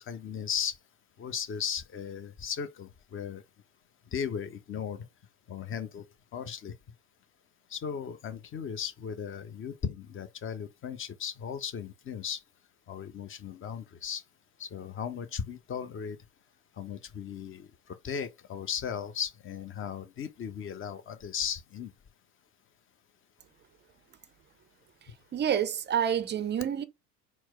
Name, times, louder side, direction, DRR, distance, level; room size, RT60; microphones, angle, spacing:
voice 1, 0.1-0.7 1.2-3.4 4.1-5.0 5.5-6.0 6.3-6.7 7.7-12.4 12.9-14.2 14.6-16.2 16.8-17.7 18.0-21.9, left 7 dB, 25° left, 0.7 m, -36 dB
voice 2, 25.3-26.8, right 9 dB, 25° right, 0.5 m, -28 dB
4.5 x 2.0 x 4.4 m
hypercardioid pair, 75°, 45 cm